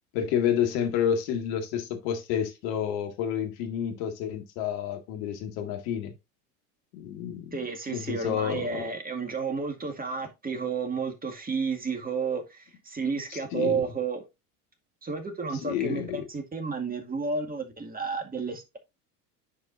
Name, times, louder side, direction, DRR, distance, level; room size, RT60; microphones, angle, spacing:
voice 1, 0.1-6.1 6.9-7.5 7.9-8.9 13.3-13.8 15.6-16.2, left 9 dB, 60° left, 1.9 m, -29 dB
voice 2, 7.5-14.2 15.0-18.8, right 5 dB, 20° right, 2.0 m, -31 dB
10.0 x 4.8 x 2.5 m
hypercardioid pair, 75°, 46 cm